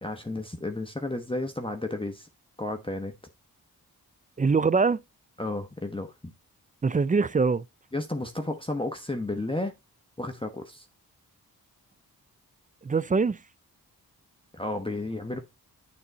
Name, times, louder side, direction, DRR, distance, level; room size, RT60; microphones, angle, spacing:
voice 1, 0.0-2.3 2.6-3.1 5.4-6.3 7.9-9.7 10.2-10.9 14.5-15.4, left 2 dB, 15° left, 1.1 m, -32 dB
voice 2, 4.4-5.0 6.8-7.6 12.8-13.4, right 4 dB, 20° right, 0.3 m, -23 dB
8.8 x 4.0 x 4.0 m
cardioid pair, 40°, 40 cm